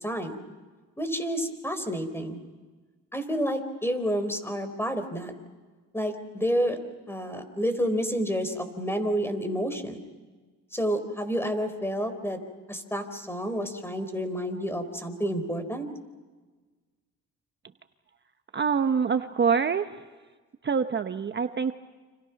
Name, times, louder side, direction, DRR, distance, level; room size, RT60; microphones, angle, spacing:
voice 1, 0.0-0.4 1.0-2.4 3.1-5.3 5.9-6.8 7.1-10.0 10.7-12.4 12.7-15.9, equal, 10° left, 10 dB, 4.1 m, -29 dB
voice 2, 18.5-19.9 20.6-21.7, right 6 dB, 35° right, 8 dB, 1.0 m, -25 dB
30.0 x 27.5 x 5.9 m, 1.3 s
cardioid pair, 90°, 30 cm